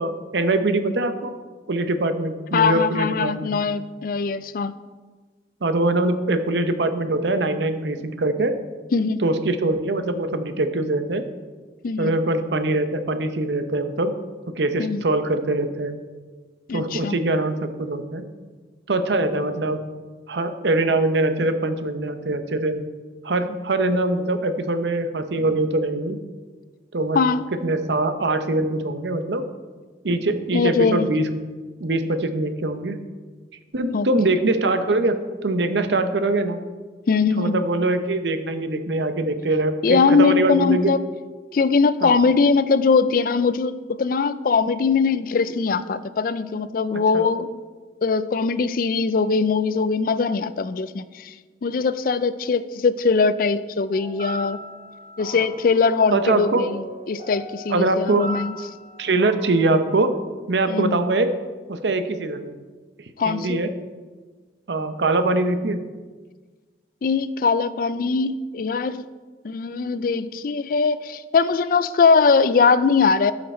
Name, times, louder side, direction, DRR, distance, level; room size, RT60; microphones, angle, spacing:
voice 1, 0.0-1.3 1.7-3.5 5.6-8.5 9.2-11.2 12.0-14.1 14.5-16.0 16.7-18.2 18.9-19.8 20.3-22.8 23.2-26.2 26.9-27.2 27.5-29.4 30.0-31.3 31.8-33.0 33.7-35.2 35.4-36.6 37.4-40.9 42.0-42.1 47.1-47.3 55.3-55.5 56.1-56.6 57.7-58.3 59.0-60.1 60.5-61.3 61.7-62.5 63.2-63.7 64.7-65.8, right 2 dB, 80° right, 9 dB, 0.7 m, -23 dB
voice 2, 2.5-4.7 8.9-9.2 11.8-12.1 14.8-15.0 16.7-17.2 27.1-27.5 30.5-31.1 33.9-34.3 37.1-37.6 39.8-41.1 41.5-47.6 48.0-51.3 51.6-54.6 55.2-58.6 60.7-61.0 63.2-63.6 67.0-69.0 69.4-73.3, left 5 dB, 50° left, 14 dB, 0.4 m, -21 dB
sound 1, 53.9-59.6, right 1 dB, 40° right, 2.1 m, -38 dB
12.5 x 5.8 x 4.3 m, 1.4 s
head